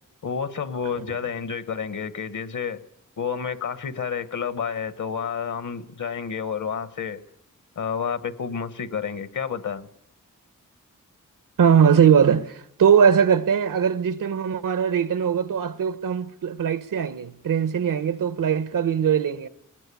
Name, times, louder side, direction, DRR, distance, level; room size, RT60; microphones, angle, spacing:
voice 1, 0.2-2.8 3.2-7.2 7.8-9.9, left 6 dB, 70° left, 1.2 m, -30 dB
voice 2, 11.6-19.5, right 7 dB, 85° right, 1.1 m, -20 dB
20.0 x 19.5 x 8.4 m
wide cardioid pair, 110°, 32 cm